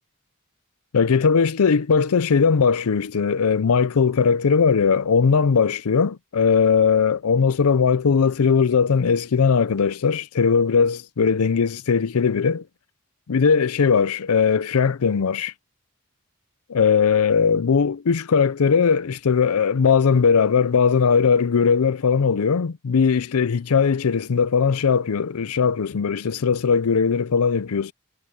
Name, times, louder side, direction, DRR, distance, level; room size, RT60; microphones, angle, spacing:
voice 1, 0.9-12.6 13.3-15.5 16.7-27.9, left 6 dB, 80° left, 0.5 m, -19 dB
head